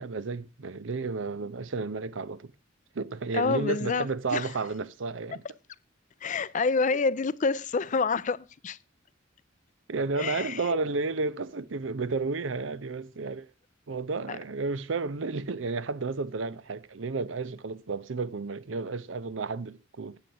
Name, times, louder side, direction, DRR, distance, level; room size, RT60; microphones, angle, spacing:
voice 1, 0.0-2.5 2.9-5.4 9.9-13.5 13.9-20.2, right 4 dB, 75° right, 0.6 m, -32 dB
voice 2, 3.3-4.5 6.2-8.8 10.2-10.6 14.3-14.4, left 4 dB, 40° left, 0.5 m, -28 dB
8.9 x 7.7 x 6.9 m
head